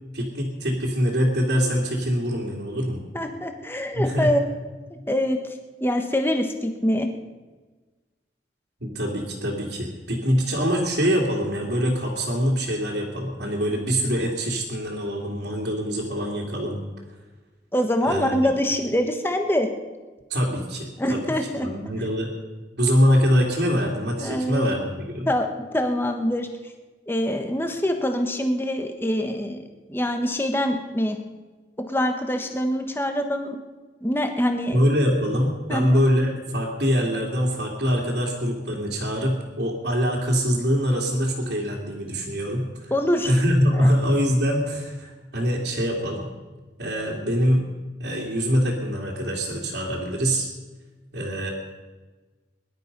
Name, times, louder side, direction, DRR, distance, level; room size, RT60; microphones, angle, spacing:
voice 1, 0.1-3.0 3.9-4.3 8.8-16.8 18.0-18.4 20.3-21.2 21.6-22.3 22.8-25.3 34.7-42.9 43.2-46.3 46.8-47.6 48.0-50.5 51.1-51.5, equal, 65° right, -6 dB, 2.8 m, -24 dB
voice 2, 3.1-4.4 4.9-5.4 5.8-7.1 17.7-19.7 21.0-21.7 24.2-24.7 25.3-25.5 25.7-26.5 27.1-29.6 29.9-31.2 31.9-33.6 34.0-34.8 35.7-36.0 42.9-43.3 43.7-43.9, equal, 10° left, 5 dB, 1.3 m, -24 dB
21.5 x 11.5 x 5.4 m, 1.3 s
head